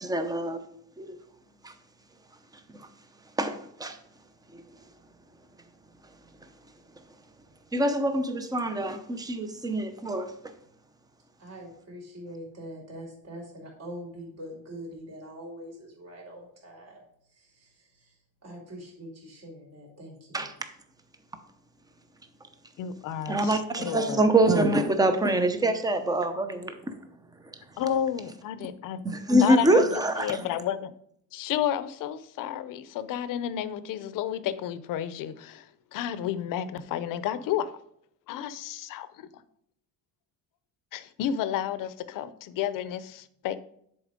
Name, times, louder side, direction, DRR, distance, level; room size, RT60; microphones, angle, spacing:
voice 1, 0.0-0.6 1.0-1.2 1.6-1.7 3.4-4.0 4.5-4.6 7.7-10.3 20.3-20.5 23.3-26.9 29.0-30.3, right 1 dB, 10° right, 0.7 m, -25 dB
voice 2, 11.4-17.0 17.3-20.4, equal, 45° right, 3.5 m, -43 dB
voice 3, 22.8-24.2 27.8-29.0 29.4-29.9 30.2-30.9 31.3-37.7 38.3-39.3 40.9-43.6, left 10 dB, 65° left, 0.7 m, -31 dB
10.0 x 4.3 x 5.1 m
cardioid pair, 160°, 36 cm